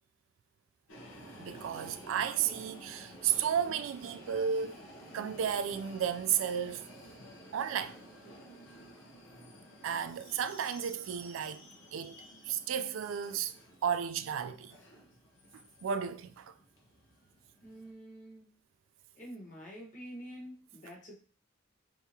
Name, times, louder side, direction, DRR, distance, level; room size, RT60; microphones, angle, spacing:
sound 1, 0.9-17.9, equal, 75° left, 0.8 m, -52 dB
voice 1, 1.4-4.8 5.1-6.8 7.5-8.0 9.8-11.6 11.9-13.5 13.8-14.8 15.5-16.5, right 8 dB, 85° right, 0.3 m, -33 dB
voice 2, 17.6-18.5 19.1-21.1, equal, 40° left, 1.1 m, -47 dB
3.6 x 2.8 x 2.8 m
head